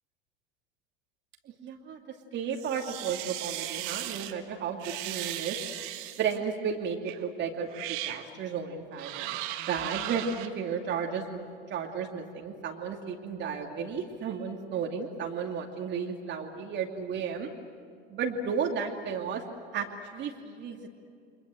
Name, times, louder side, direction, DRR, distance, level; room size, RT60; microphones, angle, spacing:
voice 1, 1.4-5.6 6.2-17.5 18.1-19.4 19.7-19.9 20.1-20.9, right 6 dB, 40° right, 1 dB, 2.7 m, -33 dB
sound 1, 2.5-4.3 4.8-6.4 7.1-7.2 7.7-8.3 9.0-10.5, right 14 dB, 60° right, 1.7 m, -37 dB
29.5 x 24.5 x 7.9 m, 2.3 s
figure-of-eight pair, 75°, 29 cm